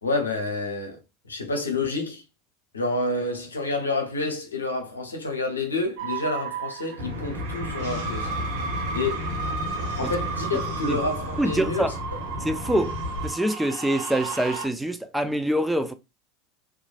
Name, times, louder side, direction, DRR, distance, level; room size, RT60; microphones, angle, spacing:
voice 1, 0.0-1.0 1.3-2.2 2.7-8.3 8.9-9.3 10.0-11.8 12.1-12.2, left 3 dB, 90° left, 0.8 m, -28 dB
sound 1, 6.0-14.7, right 5 dB, 60° right, 1.0 m, -34 dB
sound 2, 7.0-13.3, left 1 dB, 75° right, 1.3 m, -33 dB
voice 2, 11.4-11.9 12.4-12.9 13.2-15.9, right 1 dB, 5° right, 0.4 m, -25 dB
3.1 x 2.5 x 2.4 m
hypercardioid pair, 85°, 0 cm